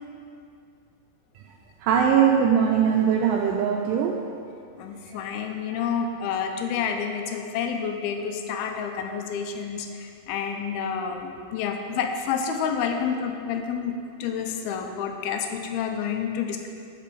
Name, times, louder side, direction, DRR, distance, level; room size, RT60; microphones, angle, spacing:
voice 1, 1.8-4.2 5.1-5.4 5.7-5.8, right 7 dB, 85° right, 1 dB, 1.9 m, -21 dB
voice 2, 4.8-13.9 14.2-16.7, left 7 dB, 90° left, 4 dB, 2.5 m, -29 dB
8.2 x 6.0 x 6.1 m, 2.4 s
omnidirectional pair, 4.3 m